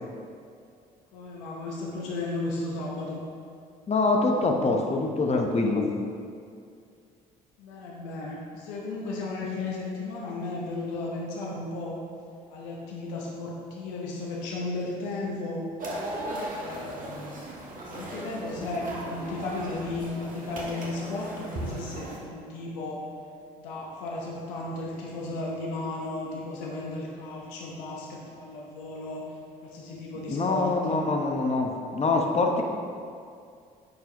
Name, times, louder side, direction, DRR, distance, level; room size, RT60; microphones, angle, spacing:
voice 1, 1.1-3.2 7.6-12.0 12.5-15.6 16.5-17.4 17.9-23.0 23.6-29.3 29.6-31.0, left 2 dB, 80° left, -3 dB, 0.9 m, -34 dB
voice 2, 3.9-5.8 30.3-32.6, left 3 dB, 35° left, 2 dB, 0.9 m, -24 dB
sound 1, 15.8-22.2, right 1 dB, 45° right, 1.4 m, -37 dB
9.5 x 4.6 x 2.9 m, 2.3 s
hypercardioid pair, 55°, 19 cm